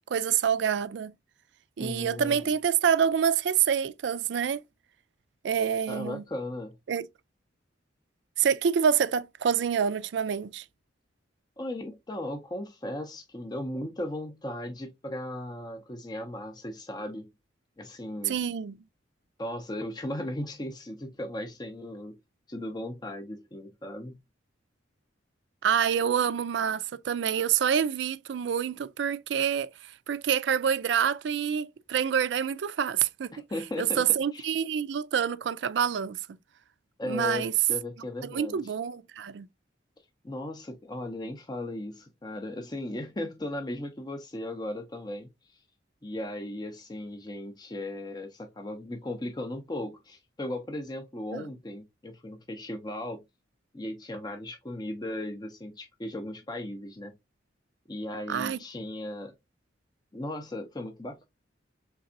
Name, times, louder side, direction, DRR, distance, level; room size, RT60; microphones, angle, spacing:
voice 1, 0.1-1.1 1.8-4.6 5.4-6.2 6.9-7.0 8.4-10.6 18.3-18.8 25.6-33.3 33.8-36.2 37.1-37.5 38.2-39.5 51.3-51.5 58.3-58.6, right 8 dB, 65° right, 0.4 m, -27 dB
voice 2, 1.8-2.5 5.9-6.8 11.6-17.3 17.8-18.4 19.4-22.2 22.5-24.2 33.3-34.0 34.3-34.5 37.0-38.7 40.2-45.6 46.0-53.2 53.7-57.1 57.9-59.3 60.1-61.2, left 1 dB, 20° left, 0.5 m, -37 dB
3.9 x 3.3 x 2.5 m
head